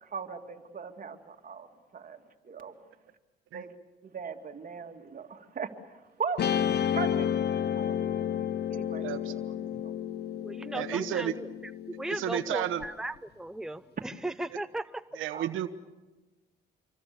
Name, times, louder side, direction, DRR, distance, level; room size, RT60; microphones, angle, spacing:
voice 1, 0.0-1.7 1.9-2.7 3.5-3.7 4.0-6.5 6.9-7.3 7.7-8.3 8.7-9.1 9.6-9.9 15.3-15.7, right 5 dB, 45° right, 2.6 m, -39 dB
Guitar, 6.4-12.8, left 9 dB, 55° left, 0.9 m, -31 dB
voice 2, 9.0-9.8 10.7-11.3 12.1-12.8 15.1-15.7, right 11 dB, 90° right, 1.3 m, -33 dB
voice 3, 10.4-15.0, right 1 dB, 5° right, 0.8 m, -37 dB
27.0 x 23.5 x 7.0 m
cardioid pair, 90°, 20 cm